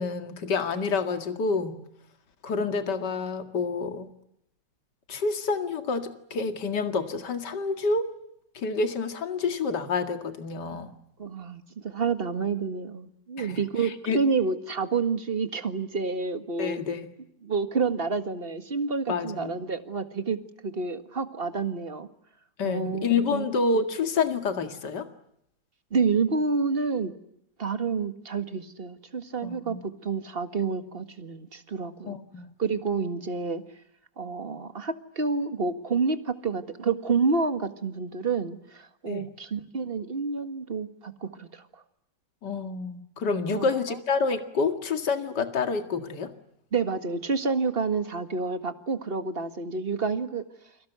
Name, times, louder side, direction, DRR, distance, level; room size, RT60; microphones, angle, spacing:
voice 1, 0.0-1.8 2.4-4.1 5.1-8.0 8.5-10.9 13.4-14.2 16.6-17.1 19.1-19.6 22.6-25.1 29.4-29.8 32.1-32.5 39.1-39.3 42.4-46.3, left 4 dB, 65° left, 7 dB, 2.6 m, -28 dB
voice 2, 11.2-16.8 17.4-22.1 22.6-23.1 23.3-23.5 25.9-27.1 27.6-32.2 32.6-33.6 34.2-41.8 43.5-43.7 46.7-50.4, right 4 dB, 30° right, 9 dB, 1.8 m, -29 dB
29.5 x 24.0 x 8.1 m, 0.75 s
omnidirectional pair, 2.0 m